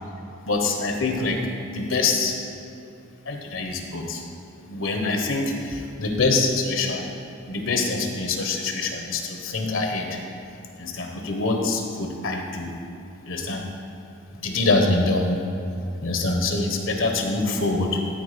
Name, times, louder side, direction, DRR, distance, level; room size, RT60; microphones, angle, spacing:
voice 1, 0.4-1.4 1.7-2.4 3.2-4.2 4.6-7.1 7.5-10.2 10.8-12.7 13.3-13.6 14.3-15.3 16.0-18.0, left 3 dB, 90° left, 3 dB, 1.1 m, -25 dB
13.0 x 4.5 x 5.1 m, 2.7 s
head